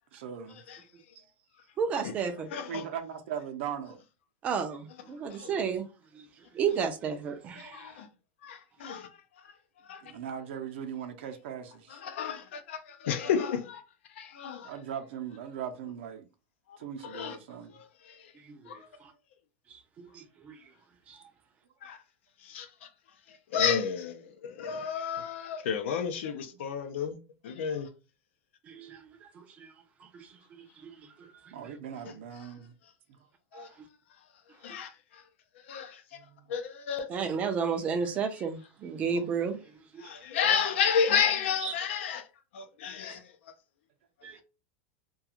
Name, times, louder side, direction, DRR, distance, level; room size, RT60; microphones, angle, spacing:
voice 1, 0.1-0.6 1.2-1.3 2.7-4.0 10.0-12.0 14.6-16.3 16.8-17.7 26.5-26.6 31.5-32.7 36.1-36.5, right 8 dB, 75° right, 0.6 m, -39 dB
voice 2, 1.8-2.5 4.4-5.9 6.1-6.2 6.5-7.9 18.5-18.8 20.0-20.6 21.1-21.2 28.7-29.0 29.4-29.7 30.1-30.3 30.6-31.3 33.5-33.7 37.1-39.6 39.9-40.0 41.6-41.7 44.2-44.4, right 6 dB, 20° right, 0.4 m, -32 dB
voice 3, 2.5-2.9 5.3-5.5 7.6-8.1 8.4-9.1 9.8-10.0 11.9-13.8 14.1-14.7 16.7-16.8 17.0-17.4 17.7-18.3 18.7-18.8 21.8-22.0 22.4-22.9 23.3-27.2 27.4-27.9 32.4-32.5 33.5-33.7 34.6-35.2 35.6-36.2 36.5-37.1 39.1-39.2 40.0-42.3 42.5-43.3, left 7 dB, 85° left, 0.5 m, -32 dB
2.4 x 2.3 x 2.8 m
supercardioid pair, 170°, 6 cm